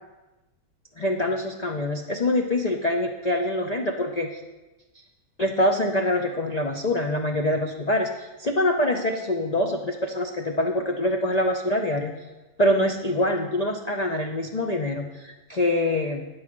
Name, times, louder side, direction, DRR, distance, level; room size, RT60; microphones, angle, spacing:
voice 1, 1.0-4.4 5.4-12.1 12.6-16.3, left 1 dB, 85° left, 2 dB, 0.3 m, -25 dB
8.8 x 4.8 x 7.4 m, 1.1 s
omnidirectional pair, 1.7 m